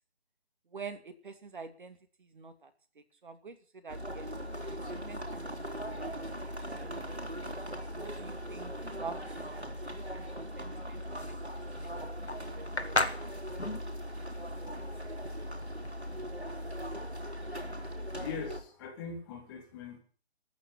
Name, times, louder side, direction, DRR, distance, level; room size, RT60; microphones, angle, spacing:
voice 1, 0.7-4.3 4.6-5.5 5.9-6.3 6.8-7.4 7.9-12.1 12.5-13.1, right 5 dB, 50° right, 9 dB, 2.7 m, -48 dB
sound 1, 3.9-18.6, equal, 85° right, 4.3 m, -39 dB
sound 2, 11.2-16.2, left 2 dB, 80° left, 2.2 m, -35 dB
voice 2, 18.2-20.0, left 5 dB, 20° left, 2 dB, 3.1 m, -41 dB
14.5 x 9.7 x 9.9 m, 0.42 s
figure-of-eight pair, 145°, 32 cm